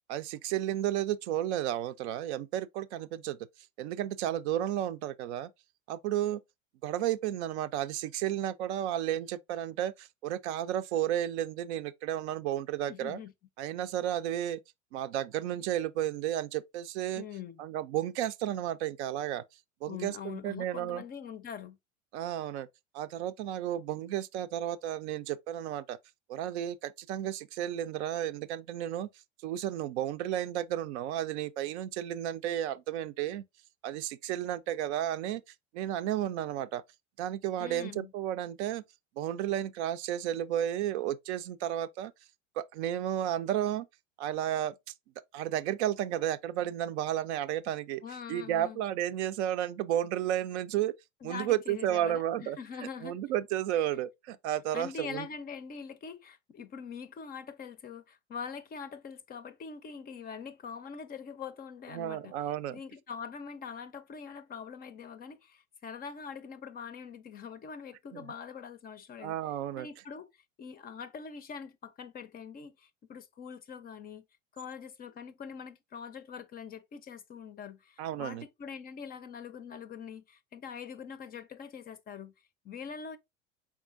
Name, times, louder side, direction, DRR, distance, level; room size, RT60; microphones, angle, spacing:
voice 1, 0.1-3.4 3.8-5.5 5.9-6.4 6.8-13.2 13.6-14.6 14.9-17.2 17.6-19.4 19.8-21.0 22.1-22.7 22.9-26.0 26.3-29.1 29.4-33.4 33.8-35.4 35.7-36.8 37.2-38.8 39.2-42.1 42.6-43.9 44.2-44.7 45.3-48.0 48.3-50.9 51.2-52.6 53.0-55.3 61.9-62.8 68.1-68.2 69.2-69.9 78.0-78.4, right 11 dB, 60° right, 0.5 m, -32 dB
voice 2, 12.9-13.3 17.1-17.6 19.9-21.8 37.6-38.1 48.0-48.8 51.2-53.2 54.7-62.3 62.7-69.4 69.8-74.3 74.5-83.2, left 6 dB, 25° left, 0.5 m, -43 dB
4.7 x 3.6 x 2.4 m
hypercardioid pair, 85°, 37 cm